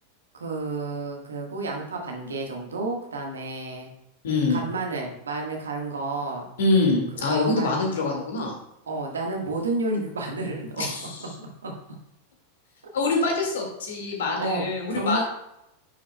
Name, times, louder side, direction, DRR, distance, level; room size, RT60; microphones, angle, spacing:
voice 1, 0.3-3.9 4.5-6.5 7.3-8.0 8.9-11.3 11.6-11.7 14.4-14.7 14.9-15.2, right 2 dB, 70° right, 1 dB, 1.4 m, -31 dB
voice 2, 4.2-4.6 6.6-8.6 10.8-11.2 12.9-15.2, left 3 dB, 60° left, 1 dB, 1.9 m, -24 dB
9.6 x 6.0 x 2.2 m, 0.81 s
figure-of-eight pair, 90°, 0 cm